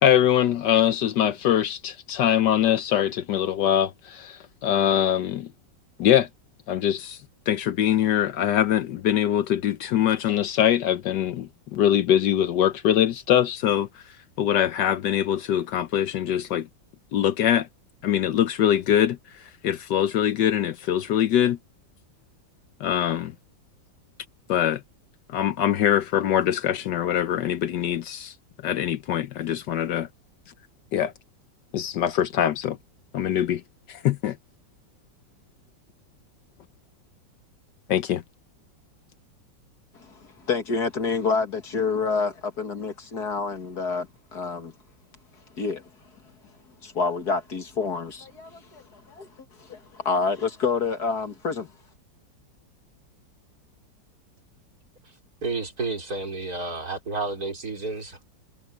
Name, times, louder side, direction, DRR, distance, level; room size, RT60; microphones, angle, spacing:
voice 1, 0.0-5.5 6.0-6.3 6.7-7.2 7.5-13.9 14.4-16.7 17.1-17.7 18.0-21.6 22.8-23.3 24.5-24.8 25.3-28.3 28.6-30.1 30.9-31.1 31.7-32.8 33.1-33.6 33.9-34.4 37.9-38.2, left 10 dB, 70° left, 1.3 m, -23 dB
voice 2, 39.9-44.7 45.5-45.9 46.8-49.3 49.6-51.7, left 4 dB, 55° left, 2.4 m, -28 dB
voice 3, 55.0-58.2, right 3 dB, 50° right, 5.1 m, -31 dB
omnidirectional pair, 2.0 m